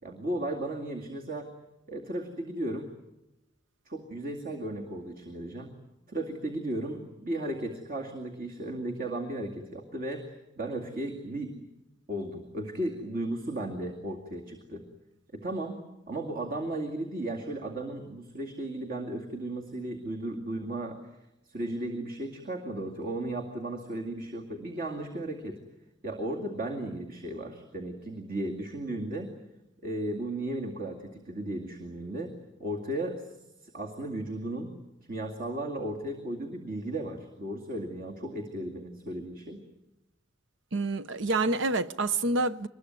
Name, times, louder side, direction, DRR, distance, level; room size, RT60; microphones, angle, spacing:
voice 1, 0.0-1.5 1.9-2.9 3.9-5.7 6.1-11.6 12.1-14.8 15.3-15.8 16.1-21.0 21.4-25.6 26.0-29.3 29.8-33.2 33.6-34.7 35.1-39.6, right 1 dB, 50° right, 2.3 m, -35 dB
voice 2, 40.7-42.7, right 2 dB, 90° right, 0.8 m, -27 dB
24.5 x 21.0 x 9.6 m
head